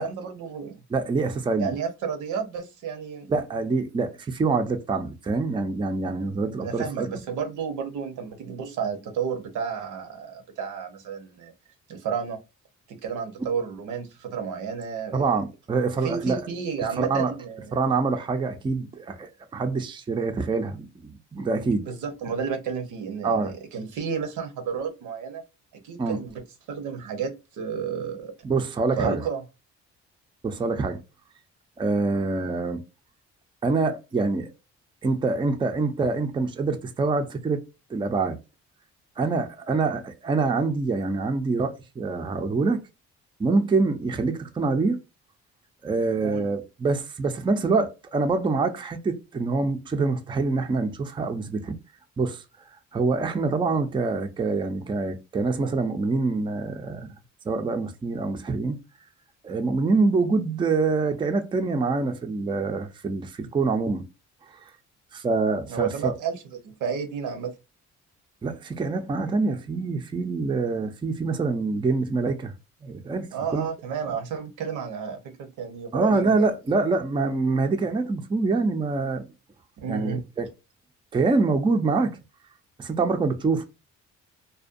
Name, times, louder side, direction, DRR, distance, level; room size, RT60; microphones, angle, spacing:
voice 1, 0.0-0.8 1.6-3.3 6.6-11.5 11.9-12.4 12.9-15.2 16.0-18.0 21.8-25.4 25.8-26.4 26.7-28.3 29.0-29.4 46.2-46.4 65.7-67.5 73.3-76.5 79.8-80.2, right 6 dB, 85° right, 0.7 m, -31 dB
voice 2, 0.9-1.7 3.3-7.1 15.1-16.4 17.0-17.3 17.7-21.9 23.2-23.5 26.0-26.2 28.4-29.3 30.4-31.0 31.8-32.8 33.6-34.5 35.0-37.6 37.9-38.4 39.2-42.8 43.4-45.0 45.8-51.8 52.2-52.4 52.9-57.1 57.5-58.8 59.4-64.0 64.5-64.6 65.1-66.1 68.4-72.5 72.8-73.7 75.9-79.2 79.9-80.5 81.1-82.2 82.8-83.6, right 3 dB, 15° right, 0.4 m, -25 dB
2.5 x 2.1 x 2.5 m
cardioid pair, 90°, 30 cm